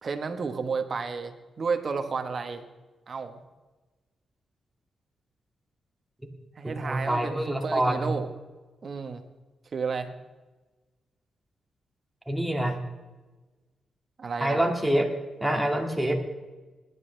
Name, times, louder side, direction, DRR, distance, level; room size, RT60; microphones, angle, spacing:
voice 1, 0.0-2.7 3.1-3.4 6.6-8.3 8.8-9.2 9.7-10.1 14.2-14.6, right 5 dB, 50° right, 7 dB, 1.4 m, -32 dB
voice 2, 6.6-8.1 12.3-12.8 14.4-15.1 15.4-16.1, right 1 dB, 5° right, 1 dB, 2.3 m, -26 dB
20.0 x 11.0 x 3.4 m, 1.2 s
cardioid pair, 85°, 0 cm